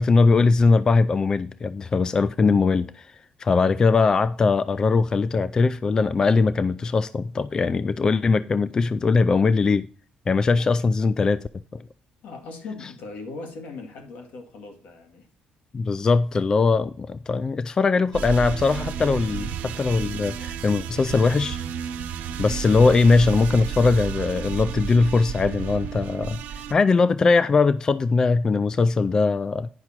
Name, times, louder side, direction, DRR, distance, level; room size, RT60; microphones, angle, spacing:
voice 1, 0.0-3.1 3.4-9.9 10.3-11.5 15.7-21.6 22.4-26.4 26.7-29.7, left 4 dB, 25° left, 0.3 m, -20 dB
voice 2, 10.5-10.9 12.2-15.3, left 3 dB, 75° left, 2.1 m, -39 dB
sound 1, 18.1-26.7, right 8 dB, 80° right, 1.1 m, -32 dB
9.7 x 5.9 x 4.4 m
cardioid pair, 140°, 3 cm